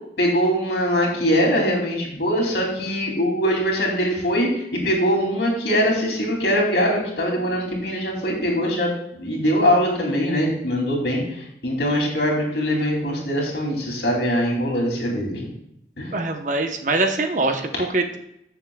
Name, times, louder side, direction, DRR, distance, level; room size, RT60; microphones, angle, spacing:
voice 1, 0.2-15.4 16.0-16.1, equal, 75° left, -1 dB, 2.7 m, -22 dB
voice 2, 16.1-18.2, right 2 dB, 45° right, 5 dB, 0.9 m, -23 dB
14.5 x 7.0 x 2.3 m, 0.79 s
head